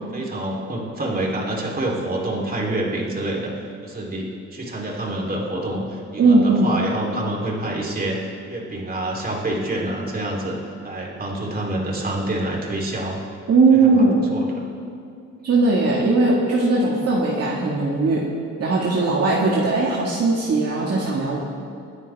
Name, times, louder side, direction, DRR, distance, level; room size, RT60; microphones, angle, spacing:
voice 1, 0.1-3.5 3.8-13.2 13.8-14.6, right 1 dB, 30° right, -3 dB, 3.7 m, -27 dB
voice 2, 6.2-6.7 13.5-14.2 15.4-18.2 18.6-21.4, right 3 dB, 55° right, -5 dB, 2.2 m, -18 dB
26.0 x 9.7 x 3.6 m, 2.5 s
cardioid pair, 90°, 30 cm